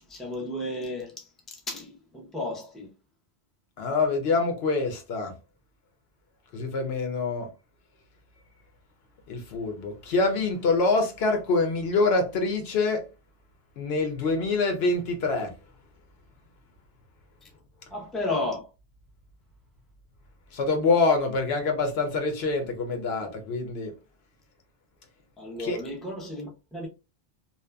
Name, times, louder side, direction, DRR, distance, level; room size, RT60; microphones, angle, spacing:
voice 1, 0.1-2.9 17.9-18.7 25.4-26.9, left 2 dB, ahead, 0.4 m, -33 dB
voice 2, 3.8-5.3 6.5-7.5 9.3-13.1 13.8-15.5 20.5-23.9 25.6-25.9, left 3 dB, 75° left, 0.9 m, -25 dB
2.7 x 2.2 x 2.2 m
omnidirectional pair, 1.1 m